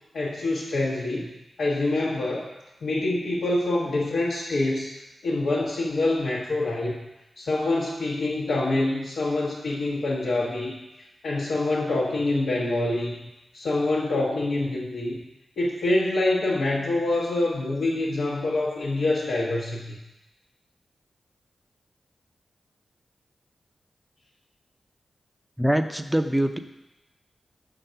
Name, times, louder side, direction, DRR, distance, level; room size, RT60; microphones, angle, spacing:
voice 1, 0.1-1.3 1.6-2.5 2.8-4.9 5.2-7.0 7.3-10.8 11.2-13.1 13.5-15.2 15.6-20.0, left 2 dB, 85° left, -6 dB, 1.0 m, -25 dB
voice 2, 25.6-26.6, equal, 5° right, 8 dB, 0.5 m, -23 dB
6.3 x 3.9 x 5.6 m, 0.98 s
cardioid pair, 65°, 0 cm